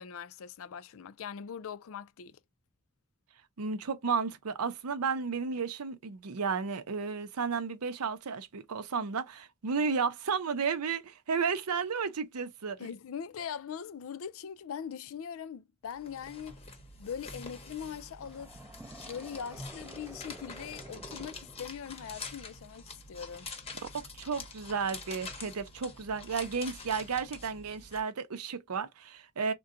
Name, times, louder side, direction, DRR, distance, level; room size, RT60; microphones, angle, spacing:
voice 1, 0.0-2.4 12.8-16.6 17.0-18.5 19.1-23.5, left 7 dB, 65° left, 0.4 m, -41 dB
voice 2, 3.6-12.9 23.9-29.5, right 5 dB, 85° right, 0.6 m, -33 dB
sound 1, 15.9-28.0, left 3 dB, 25° left, 0.8 m, -46 dB
sound 2, 18.2-22.1, right 2 dB, 10° right, 0.4 m, -50 dB
3.8 x 2.2 x 2.5 m
head